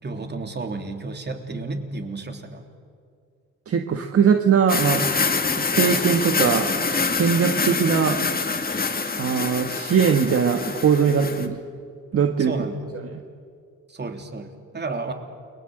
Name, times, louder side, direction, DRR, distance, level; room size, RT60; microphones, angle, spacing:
voice 1, 0.0-2.6 12.4-12.8 13.9-15.1, right 3 dB, 35° right, 5 dB, 3.3 m, -31 dB
voice 2, 3.7-6.7 7.1-8.2 9.2-11.6 12.1-12.5 13.1-13.2, right 7 dB, 50° right, 5 dB, 1.7 m, -21 dB
sound 1, 4.7-11.5, left 4 dB, 30° left, 2.2 m, -25 dB
29.5 x 22.0 x 8.0 m, 2.2 s
cardioid pair, 90°, 30 cm